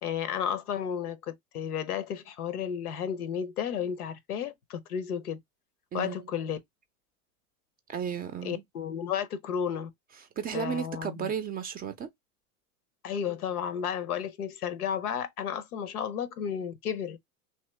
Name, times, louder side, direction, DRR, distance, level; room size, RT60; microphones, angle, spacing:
voice 1, 0.0-5.4 5.9-6.6 8.4-9.9 10.5-11.3 13.0-17.2, left 8 dB, 85° left, 0.8 m, -33 dB
voice 2, 7.9-8.6 10.4-12.1, right 7 dB, 20° right, 0.4 m, -33 dB
2.9 x 2.7 x 3.1 m
hypercardioid pair, 95°, 44 cm